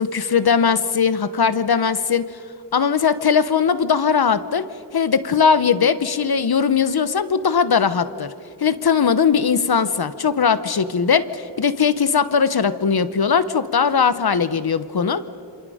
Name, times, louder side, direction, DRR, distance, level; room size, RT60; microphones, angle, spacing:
voice 1, 0.0-2.3 2.7-4.6 4.9-8.3 8.6-15.2, left 6 dB, 60° left, 13 dB, 1.1 m, -19 dB
27.5 x 27.0 x 5.0 m, 2.6 s
wide cardioid pair, 95°, 42 cm